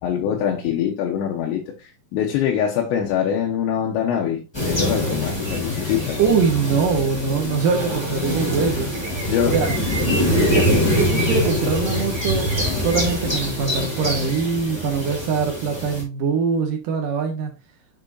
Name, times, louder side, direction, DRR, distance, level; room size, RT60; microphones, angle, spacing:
voice 1, 0.0-6.2 6.8-6.9 7.4-7.6 9.3-9.6 10.5-10.8, left 9 dB, 85° left, 3.2 m, -24 dB
sound 1, 4.5-16.0, equal, 5° left, 3.3 m, -23 dB
voice 2, 6.2-8.9 9.5-9.7 10.8-12.5 12.8-17.5, right 5 dB, 75° right, 2.0 m, -23 dB
7.3 x 6.8 x 2.6 m
omnidirectional pair, 5.2 m